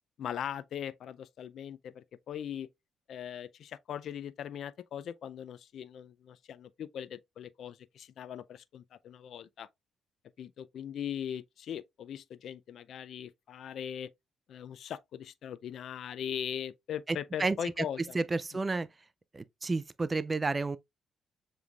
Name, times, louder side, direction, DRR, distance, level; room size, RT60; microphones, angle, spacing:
voice 1, 0.2-2.7 3.1-9.7 10.4-14.1 14.5-18.2, left 9 dB, 70° left, 0.4 m, -40 dB
voice 2, 17.1-17.8 18.1-18.9 19.3-20.8, right 3 dB, 25° right, 0.3 m, -31 dB
7.1 x 3.2 x 2.3 m
cardioid pair, 90°, 0 cm